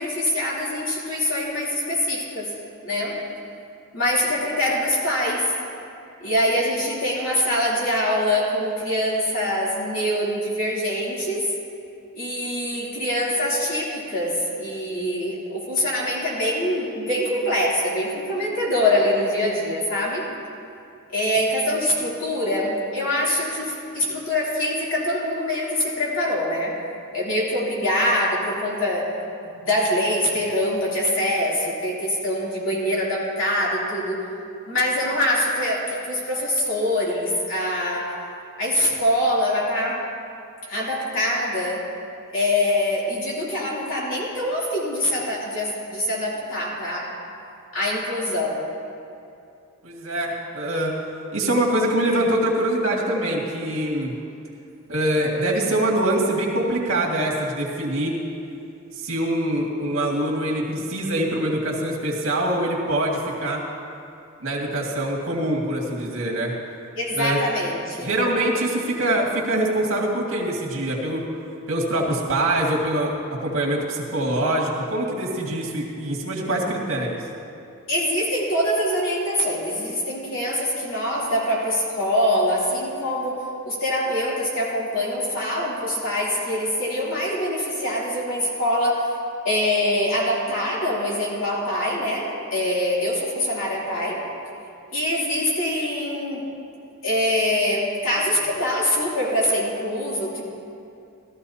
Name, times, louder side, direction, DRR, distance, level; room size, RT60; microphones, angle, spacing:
voice 1, 0.0-2.5 2.8-3.2 3.9-5.5 6.2-11.5 12.1-20.3 21.1-26.7 27.1-29.0 29.4-34.2 34.7-38.1 38.6-40.0 40.7-41.8 42.3-47.1 47.7-48.7 66.9-68.1 77.9-83.4 83.6-89.1 89.4-94.2 94.9-96.4 97.0-100.4, left 1 dB, 65° left, -6 dB, 3.1 m, -24 dB
voice 2, 49.8-51.0 51.3-54.2 54.9-58.2 59.0-63.6 64.4-66.5 67.1-67.4 68.0-71.3 71.7-73.1 73.4-77.2, right 1 dB, 65° right, -2 dB, 2.1 m, -24 dB
15.5 x 13.5 x 2.8 m, 2.6 s
head